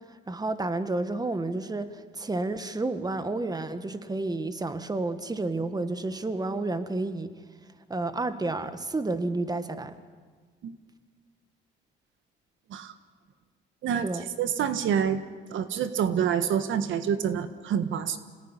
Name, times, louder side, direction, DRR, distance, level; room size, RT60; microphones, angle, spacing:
voice 1, 0.3-7.3 7.9-9.9 14.0-14.3, right 2 dB, 20° right, 10 dB, 1.7 m, -30 dB
voice 2, 14.4-15.2 15.5-18.2, right 8 dB, 80° right, 10 dB, 1.5 m, -27 dB
26.5 x 19.5 x 10.0 m, 1.5 s
cardioid pair, 90°, 20 cm